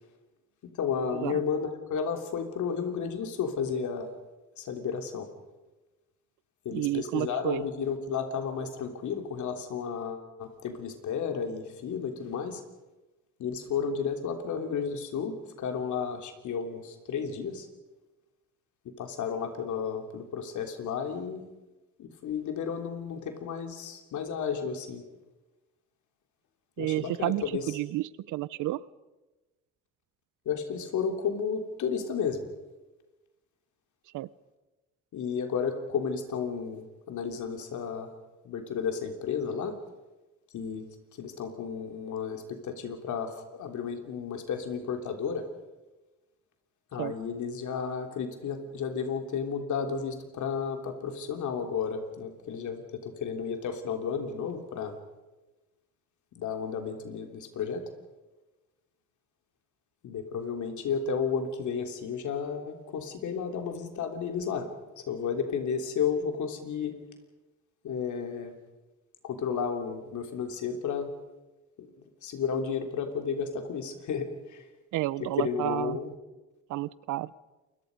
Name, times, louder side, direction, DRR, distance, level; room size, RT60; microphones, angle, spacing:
voice 1, 0.8-4.1 4.6-5.3 6.6-12.6 13.4-17.6 19.0-21.4 22.0-25.0 26.8-27.6 30.4-32.4 35.1-38.1 38.4-39.8 40.5-40.8 41.2-45.4 46.9-54.9 56.4-57.8 60.0-64.7 65.1-67.0 67.8-68.5 69.2-71.1 71.8-71.9 72.2-74.3 75.4-76.1, left 6 dB, 75° left, 5 dB, 3.3 m, -32 dB
voice 2, 6.7-7.7 26.8-28.8 34.1-34.3 47.0-47.1 74.9-76.0 76.7-77.3, right 16 dB, 90° right, 20 dB, 0.7 m, -31 dB
28.0 x 22.0 x 5.3 m, 1.1 s
cardioid pair, 90°, 30 cm